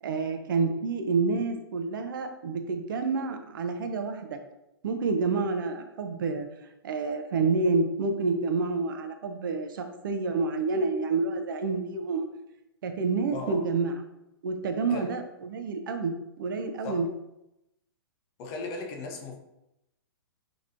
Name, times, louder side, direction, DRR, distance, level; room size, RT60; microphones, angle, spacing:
voice 1, 0.0-4.4 4.8-6.5 6.8-12.3 12.8-13.9 14.4-17.1, right 4 dB, 55° right, 6 dB, 0.6 m, -28 dB
voice 2, 13.3-13.7 14.9-15.2 16.8-17.1 18.4-19.4, left 3 dB, 30° left, 2 dB, 0.7 m, -37 dB
6.0 x 2.9 x 2.6 m, 0.89 s
figure-of-eight pair, 115°, 13 cm